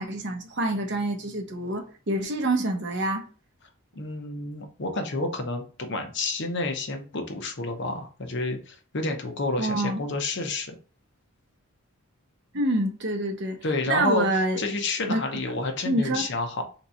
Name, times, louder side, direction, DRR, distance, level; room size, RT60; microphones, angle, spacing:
voice 1, 0.0-3.2 9.6-10.0 12.5-13.6 13.8-14.6 15.1-15.2 15.8-16.3, right 1 dB, 50° right, 0.8 m, -26 dB
voice 2, 4.0-10.8 13.6-16.6, left 2 dB, 50° left, 0.7 m, -30 dB
3.5 x 2.9 x 4.0 m
head